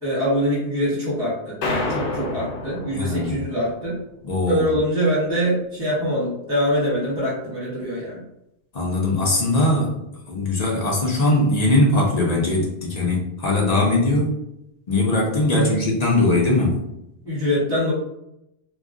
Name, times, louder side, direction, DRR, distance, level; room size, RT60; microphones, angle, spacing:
voice 1, 0.0-4.0 4.5-8.2 15.5-15.8 17.2-17.9, equal, 5° right, -7 dB, 0.9 m, -24 dB
sound 1, 1.6-4.0, left 2 dB, 80° left, 0.9 m, -29 dB
voice 2, 2.9-3.4 4.2-4.7 8.7-10.0 10.3-14.3 14.9-16.8, left 2 dB, 45° left, -3 dB, 0.6 m, -20 dB
2.3 x 2.0 x 3.6 m, 0.82 s
omnidirectional pair, 1.2 m